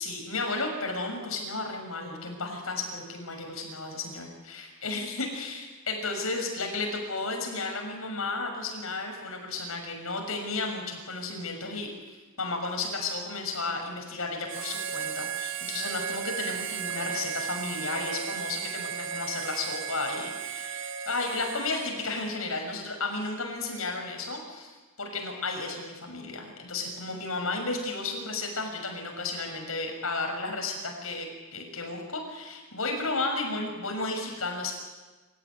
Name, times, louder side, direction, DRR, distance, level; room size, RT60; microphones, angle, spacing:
voice 1, 0.0-11.9 12.4-34.7, left 3 dB, 80° left, 3 dB, 6.6 m, -33 dB
Harmonica, 14.5-22.5, right 7 dB, 60° right, 1.5 m, -35 dB
27.0 x 15.5 x 9.8 m, 1.3 s
head